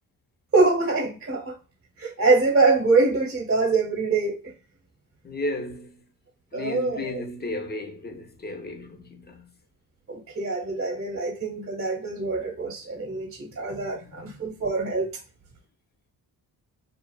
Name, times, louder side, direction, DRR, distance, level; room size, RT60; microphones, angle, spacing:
voice 1, 0.5-1.5 2.0-4.4 6.5-7.1 10.1-15.1, right 3 dB, 35° right, 1.0 m, -24 dB
voice 2, 5.2-5.9 6.5-9.5 13.9-14.3, left 2 dB, 25° left, 0.7 m, -34 dB
2.5 x 2.3 x 2.3 m
cardioid pair, 70°, 38 cm